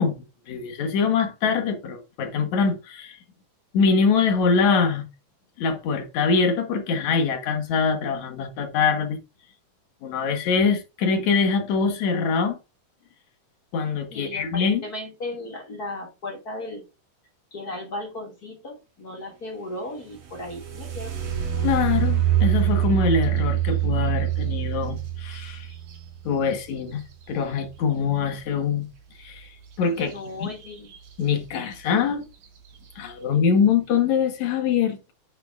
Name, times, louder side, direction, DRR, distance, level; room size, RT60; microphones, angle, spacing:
voice 1, 0.0-3.2 3.7-5.1 5.6-9.2 10.0-12.6 13.7-14.8 21.6-25.7 26.2-28.9 29.2-29.5 29.8-30.1 30.4-30.5 31.2-32.2 33.0-35.1, left 5 dB, 65° left, 2.6 m, -23 dB
voice 2, 14.1-16.9 17.5-21.2 29.9-30.9, left 2 dB, 30° left, 2.3 m, -36 dB
sound 1, 20.1-27.9 30.0-30.1 30.6-31.1 31.7-31.8 32.3-32.7, right 12 dB, 75° right, 4.3 m, -26 dB
10.5 x 6.8 x 2.4 m
omnidirectional pair, 3.6 m